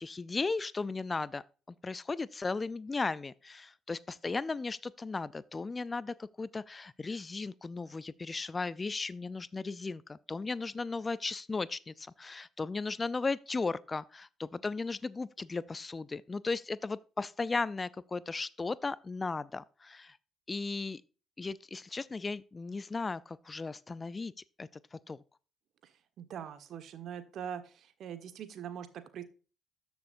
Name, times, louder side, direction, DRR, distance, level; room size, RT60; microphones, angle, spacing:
voice 1, 0.0-1.4 1.8-20.2 20.5-21.0 21.4-24.3 24.6-25.2, left 3 dB, 30° left, 0.4 m, -36 dB
voice 2, 25.8-29.2, right 9 dB, 60° right, 1.3 m, -43 dB
13.0 x 7.0 x 2.6 m
hypercardioid pair, 50°, 0 cm